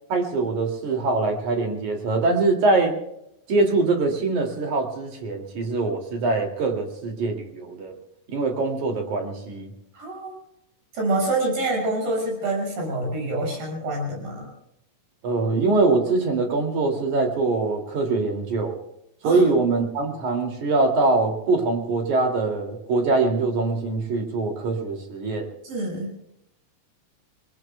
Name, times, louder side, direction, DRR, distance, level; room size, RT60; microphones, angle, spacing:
voice 1, 0.1-3.0 3.5-7.9 8.3-9.7 15.2-18.7 19.2-25.5, right 3 dB, 55° right, 3 dB, 3.8 m, -23 dB
voice 2, 9.9-10.3 10.9-14.5 19.2-19.4 25.6-26.1, right 2 dB, 75° right, 0 dB, 7.9 m, -26 dB
29.0 x 20.5 x 2.3 m, 0.82 s
omnidirectional pair, 4.2 m